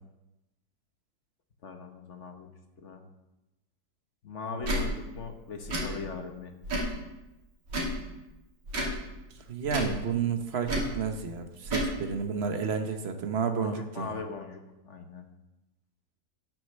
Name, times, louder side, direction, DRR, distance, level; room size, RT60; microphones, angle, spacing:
voice 1, 1.6-2.5 2.8-3.0 4.2-6.5 13.5-15.3, left 5 dB, 45° left, 5 dB, 1.1 m, -40 dB
Tick / Tick-tock, 4.6-4.8 5.6-5.9 6.6-7.0 7.7-8.0 8.7-9.0 9.7-10.0 10.7-10.9 11.6-11.9, equal, 65° right, 3.1 m, -30 dB
voice 2, 9.5-14.1, right 6 dB, 50° right, 6 dB, 0.8 m, -31 dB
10.5 x 6.5 x 6.6 m, 0.99 s
omnidirectional pair, 2.1 m